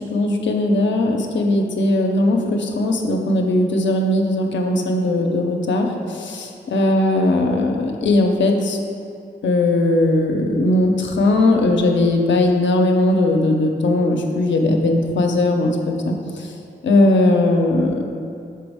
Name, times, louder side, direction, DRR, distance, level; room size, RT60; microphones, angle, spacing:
voice 1, 0.1-6.4 6.7-8.8 9.4-16.1 16.8-17.9, left 2 dB, 80° left, 2 dB, 0.6 m, -18 dB
6.1 x 4.6 x 3.5 m, 2.4 s
cardioid pair, 55°, 19 cm